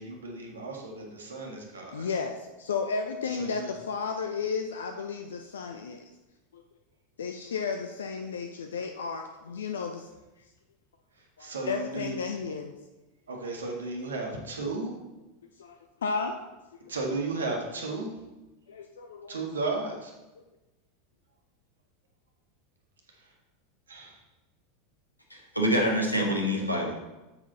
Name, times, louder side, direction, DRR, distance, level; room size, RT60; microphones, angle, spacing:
voice 1, 0.0-2.1 3.3-3.7 11.4-12.3 13.3-14.9 16.9-18.1 19.3-20.1 23.1-23.3 23.9-24.2 26.4-26.8, right 3 dB, 70° right, 1 dB, 1.7 m, -34 dB
voice 2, 1.9-6.1 6.5-6.6 7.2-10.1 11.4-12.7 15.6-16.4 18.7-19.4 20.4-20.5, left 5 dB, 70° left, 5 dB, 0.6 m, -33 dB
voice 3, 25.3-26.9, equal, 90° left, 0 dB, 1.6 m, -26 dB
8.9 x 6.2 x 4.0 m, 1.1 s
figure-of-eight pair, 85°, 0 cm